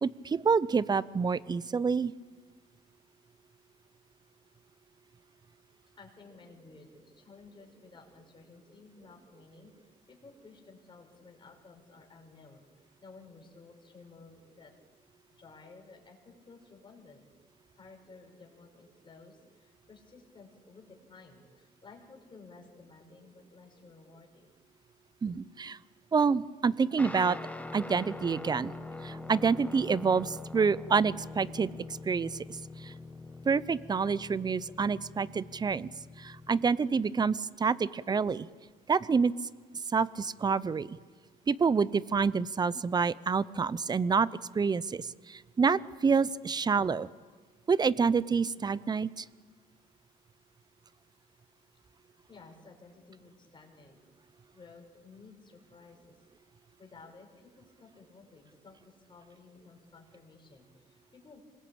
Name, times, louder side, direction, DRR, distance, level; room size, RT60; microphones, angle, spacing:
voice 1, 0.0-2.1 25.2-25.8 26.1-27.4 27.7-28.7 29.0-31.7 32.1-32.9 33.4-35.9 36.2-38.5 38.9-39.3 39.9-41.0 41.5-44.3 44.5-47.1 47.7-49.2, right 5 dB, 25° right, 19 dB, 0.7 m, -28 dB
voice 2, 6.0-14.7 15.4-17.2 17.7-24.5 52.3-54.0 54.5-56.2 56.8-61.4, left 4 dB, 30° left, 2 dB, 5.6 m, -55 dB
Guitar, 27.0-36.7, left 2 dB, 10° left, 1.6 m, -44 dB
26.5 x 20.5 x 8.7 m, 1.4 s
cardioid pair, 110°, 17 cm